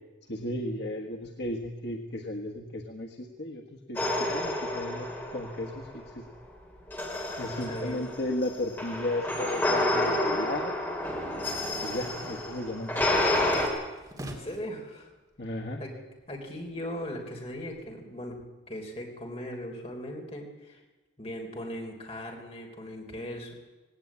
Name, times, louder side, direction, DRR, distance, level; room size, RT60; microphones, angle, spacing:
voice 1, 0.3-6.2 7.4-10.7 11.8-13.3 15.4-15.8, left 1 dB, 65° left, 1 dB, 1.5 m, -35 dB
sound 1, 4.0-6.0 6.9-13.7, left 1 dB, 10° left, 3.6 m, -29 dB
voice 2, 7.4-8.0 12.0-12.3 14.2-15.1 15.8-15.9 16.3-18.4 18.7-20.8 21.2-23.5, equal, 35° left, 2 dB, 3.6 m, -39 dB
sound 2, 11.0-11.6 11.9-14.7 15.2-15.9 16.2-17.8, right 1 dB, 20° right, 2.7 m, -45 dB
18.0 x 17.5 x 8.7 m, 1.2 s
head